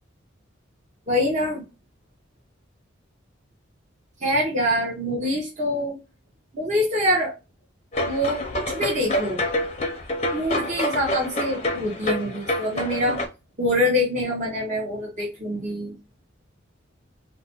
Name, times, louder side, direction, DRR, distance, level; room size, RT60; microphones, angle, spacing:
voice 1, 1.1-1.6 4.2-6.0 6.5-7.3 8.1-9.4 10.3-13.2 13.6-16.0, left 1 dB, 35° right, -4 dB, 0.8 m, -25 dB
sound 1, 7.9-13.3, left 1 dB, 30° left, 0.5 m, -27 dB
3.2 x 2.1 x 2.9 m, 0.27 s
head